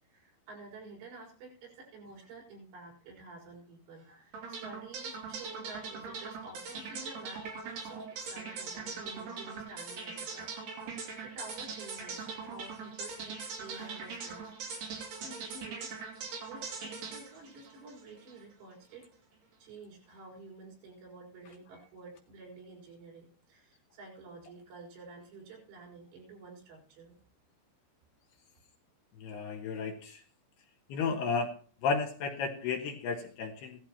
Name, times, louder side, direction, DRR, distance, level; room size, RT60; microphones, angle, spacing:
voice 1, 0.1-14.6 15.2-16.0 16.4-19.1 19.6-27.2 29.3-29.4, right 3 dB, 80° right, -2 dB, 6.9 m, -50 dB
sound 1, 4.3-18.4, right 5 dB, 60° right, 5.0 m, -41 dB
voice 2, 29.2-30.2 30.9-31.6 31.8-33.8, left 5 dB, 70° left, 2 dB, 2.8 m, -33 dB
17.0 x 13.0 x 3.0 m, 0.42 s
omnidirectional pair, 5.5 m